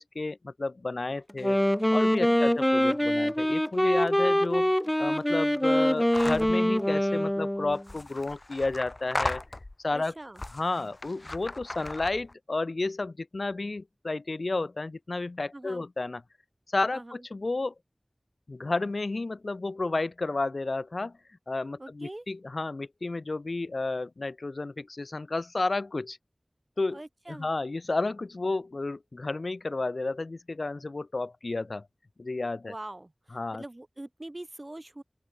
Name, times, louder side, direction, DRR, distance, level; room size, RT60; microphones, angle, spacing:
voice 1, 0.0-1.6 1.9-4.7 5.0-9.4 9.8-10.1 10.5-16.2 16.7-17.7 18.5-21.2 21.5-26.2 26.8-27.0 27.3-31.9 32.2-32.7 33.3-33.6, left 3 dB, 85° left, 0.4 m, -31 dB
Wind instrument woodwind instrument, 1.3-7.8, equal, 15° left, 0.4 m, -24 dB
sound 1, 6.1-6.6 7.7-9.9 10.4-12.3, left 2 dB, 50° left, 2.3 m, -36 dB
voice 2, 9.9-10.4 15.5-15.8 16.9-17.3 21.8-22.3 26.9-27.5 32.6-35.0, right 1 dB, 40° right, 1.7 m, -43 dB
open air
wide cardioid pair, 55°, 0 cm